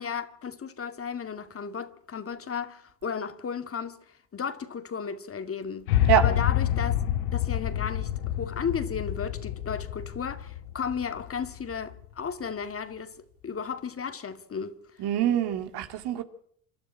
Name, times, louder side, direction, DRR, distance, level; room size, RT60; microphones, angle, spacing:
voice 1, 0.0-7.0 7.3-15.1, left 6 dB, 30° left, 2.2 m, -34 dB
sound 1, 5.9-12.1, left 12 dB, 80° left, 1.8 m, -28 dB
voice 2, 15.0-16.2, right 10 dB, 60° right, 2.6 m, -24 dB
28.0 x 12.5 x 8.7 m
hypercardioid pair, 75°, 45 cm